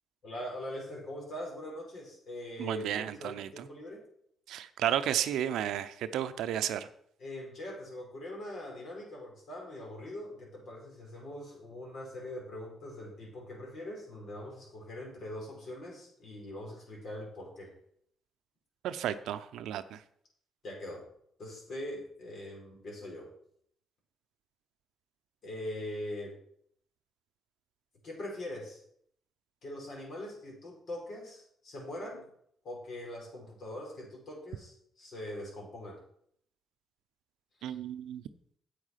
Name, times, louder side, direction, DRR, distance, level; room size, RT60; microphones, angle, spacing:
voice 1, 0.2-4.0 7.2-17.7 20.6-21.0 21.4-23.3 25.4-26.3 28.0-28.8 29.6-32.2 32.6-36.0 37.6-37.8, left 1 dB, 60° left, -1 dB, 4.9 m, -42 dB
voice 2, 2.6-3.7 4.5-6.9 18.8-20.0 37.6-38.2, right 10 dB, 80° right, 12 dB, 0.6 m, -33 dB
8.4 x 8.1 x 5.7 m, 0.68 s
cardioid pair, 70°, 0 cm